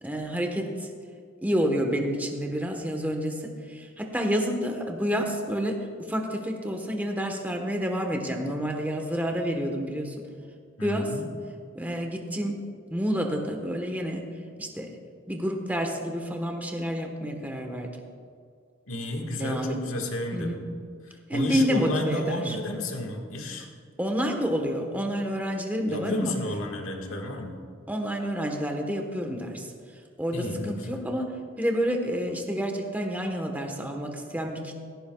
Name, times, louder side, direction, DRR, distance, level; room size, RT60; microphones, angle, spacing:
voice 1, 0.0-0.9 1.4-10.1 10.8-11.1 11.7-12.6 12.9-14.2 14.6-14.9 15.3-17.9 19.3-20.0 20.3-20.6 21.3-22.6 24.0-26.3 27.9-29.7 30.2-31.3 31.6-34.8, equal, 10° right, 2 dB, 1.2 m, -29 dB
voice 2, 10.8-11.3 18.9-20.6 21.1-23.7 25.9-27.5 30.3-31.0, left 1 dB, 80° left, 2 dB, 1.7 m, -31 dB
16.5 x 15.0 x 2.3 m, 2.2 s
head